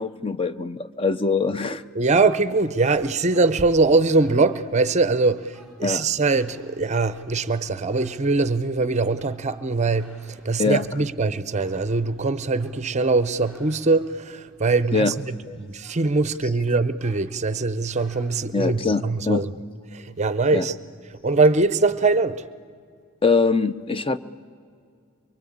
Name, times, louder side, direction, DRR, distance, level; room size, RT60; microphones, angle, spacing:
voice 1, 0.0-1.8 5.8-6.1 10.6-10.9 14.7-15.1 15.5-15.6 18.5-19.5 20.5-20.7 23.2-24.2, left 4 dB, 25° left, 0.6 m, -23 dB
voice 2, 1.9-19.5 19.9-20.7 21.2-22.5, right 3 dB, 30° right, 0.6 m, -22 dB
sound 1, 3.3-16.6 17.0-18.3, right 1 dB, 5° left, 7.3 m, -56 dB
24.0 x 23.0 x 8.6 m
head